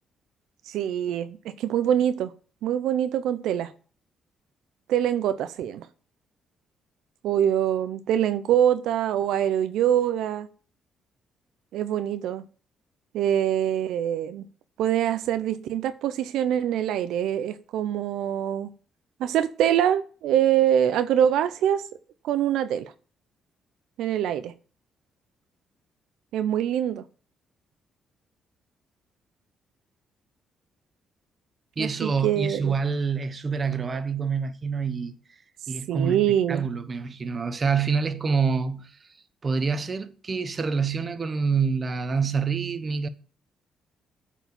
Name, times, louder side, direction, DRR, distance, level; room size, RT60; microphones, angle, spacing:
voice 1, 0.7-2.3 2.6-3.7 4.9-5.9 7.2-10.5 11.7-12.4 13.1-14.4 14.8-18.7 19.2-21.8 22.2-22.9 24.0-24.5 26.3-27.0 31.8-32.7 35.9-36.7, right 10 dB, 85° right, 0.5 m, -24 dB
voice 2, 31.8-35.1 35.7-39.0 39.4-43.1, right 5 dB, 35° right, 0.9 m, -27 dB
8.0 x 4.6 x 6.9 m
cardioid pair, 90°, 0 cm